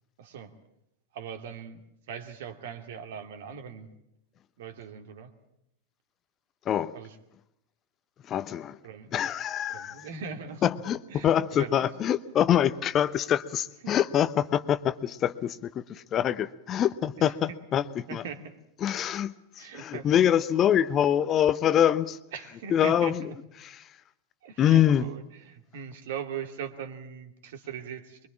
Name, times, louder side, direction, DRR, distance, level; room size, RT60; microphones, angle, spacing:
voice 1, 0.2-0.5 1.1-1.8 2.1-3.9 4.6-5.3 6.9-7.2 8.8-9.1 9.7-10.7 11.1-11.9 13.8-13.9 17.2-17.6 18.1-18.5 19.6-20.1 22.3-23.1 24.4-28.3, right 7 dB, 55° right, 2.5 m, -40 dB
voice 2, 8.2-8.8 9.1-10.1 10.6-18.2 18.8-22.2 22.7-23.3 23.6-24.0 24.6-25.1, left 10 dB, 30° left, 0.9 m, -25 dB
24.0 x 24.0 x 7.4 m
figure-of-eight pair, 90°, 0 cm